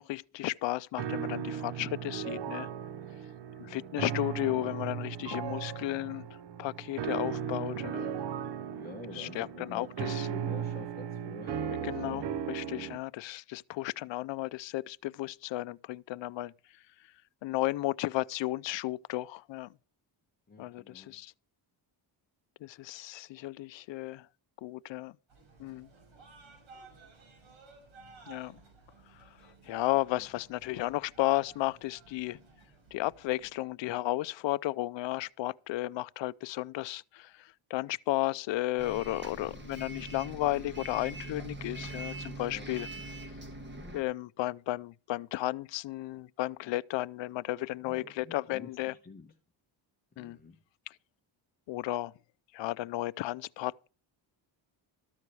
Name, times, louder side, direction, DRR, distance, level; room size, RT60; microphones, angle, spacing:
voice 1, 0.0-2.7 3.6-6.3 6.6-8.1 9.1-10.3 11.8-16.5 17.4-19.7 20.6-21.3 22.6-24.3 24.6-25.2 25.6-25.9 28.3-28.6 29.1-32.4 32.9-42.9 43.9-48.9 50.2-50.4 50.9-51.0 51.7-52.1 52.5-53.9, left 17 dB, 65° left, 0.5 m, -34 dB
sound 1, 1.0-13.0, right 8 dB, 60° right, 0.7 m, -37 dB
voice 2, 8.7-12.3 12.6-12.9 20.5-21.2 30.1-30.2 42.5-42.7 47.8-49.3 50.1-50.6, left 3 dB, 20° left, 0.9 m, -48 dB
sound 2, 25.3-33.6, right 4 dB, 75° right, 5.7 m, -56 dB
Bus, 38.8-44.0, right 2 dB, 25° right, 1.5 m, -42 dB
13.0 x 4.7 x 8.3 m
wide cardioid pair, 175°, 47 cm